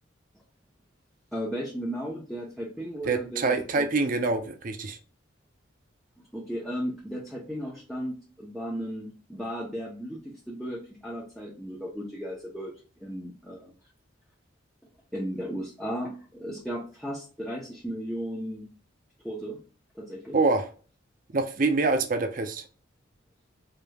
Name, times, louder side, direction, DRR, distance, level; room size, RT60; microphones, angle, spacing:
voice 1, 1.3-3.9 6.3-13.7 15.1-18.7 19.2-19.6 19.9-20.4, equal, ahead, 0.8 m, -35 dB
voice 2, 3.1-5.0 20.3-20.7 21.3-22.6, right 3 dB, 45° right, 0.5 m, -25 dB
4.9 x 2.9 x 2.3 m
head